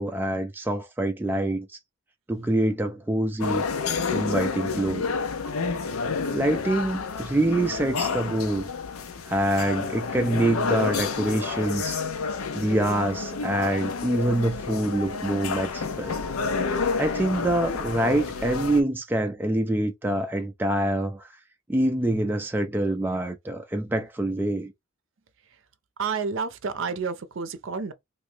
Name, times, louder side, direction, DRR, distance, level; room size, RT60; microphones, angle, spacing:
voice 1, 0.0-1.7 2.3-3.6 4.1-5.1 6.3-8.7 9.2-12.0 12.5-16.2 16.9-21.3 21.7-24.7, right 1 dB, 10° right, 0.3 m, -25 dB
sound 1, 3.4-18.8, left 4 dB, 90° left, 0.6 m, -29 dB
voice 2, 26.0-27.9, right 5 dB, 60° right, 0.6 m, -30 dB
3.0 x 2.6 x 3.2 m
head